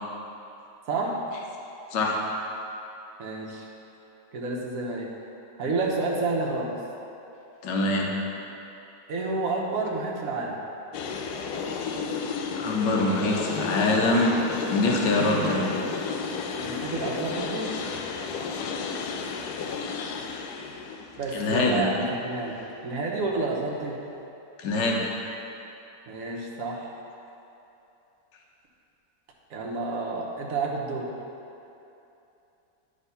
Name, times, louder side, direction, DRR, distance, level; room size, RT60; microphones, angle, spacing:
voice 1, 0.9-1.2 3.2-3.7 4.3-5.1 5.6-6.8 9.1-10.6 15.0-15.8 16.6-17.8 21.2-24.0 26.1-26.9 29.5-31.1, right 3 dB, 55° right, -2 dB, 1.3 m, -30 dB
voice 2, 7.6-8.1 12.6-14.4 14.7-15.6 21.3-21.8 24.6-25.0, left 2 dB, 90° left, -1 dB, 1.5 m, -24 dB
sound 1, 10.9-22.8, left 5 dB, 75° left, 1.1 m, -33 dB
9.9 x 3.5 x 5.5 m, 2.9 s
omnidirectional pair, 1.9 m